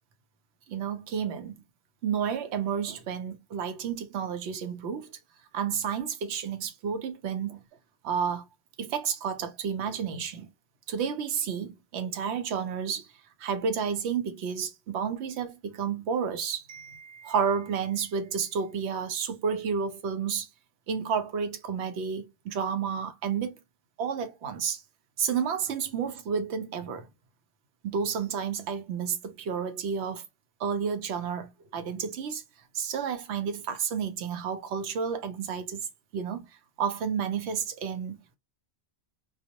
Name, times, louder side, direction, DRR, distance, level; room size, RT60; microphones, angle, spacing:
voice 1, 0.7-1.6 2.0-5.1 5.5-7.6 8.0-8.4 8.8-10.5 10.9-13.1 13.4-20.5 20.9-23.6 24.0-24.8 25.2-27.1 27.8-30.3 30.6-32.4 32.7-36.5 36.8-38.4, right 7 dB, 80° right, 0.9 m, -31 dB
2.3 x 2.0 x 2.7 m
omnidirectional pair, 1.1 m